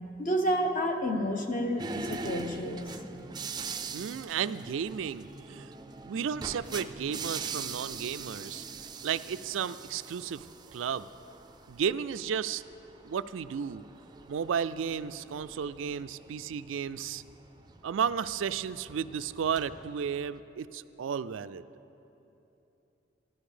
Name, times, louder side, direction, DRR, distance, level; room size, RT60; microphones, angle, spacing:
voice 1, 0.2-2.9, equal, 45° left, 4 dB, 1.0 m, -30 dB
sound 1, 1.8-20.4, right 4 dB, 20° right, 0.4 m, -43 dB
voice 2, 3.9-5.7 6.0-8.6 9.0-10.5 10.7-11.1 11.7-12.6 13.0-13.8 14.3-17.2 17.8-21.6, right 7 dB, 85° right, 13 dB, 0.4 m, -33 dB
14.0 x 12.5 x 5.0 m, 2.9 s
head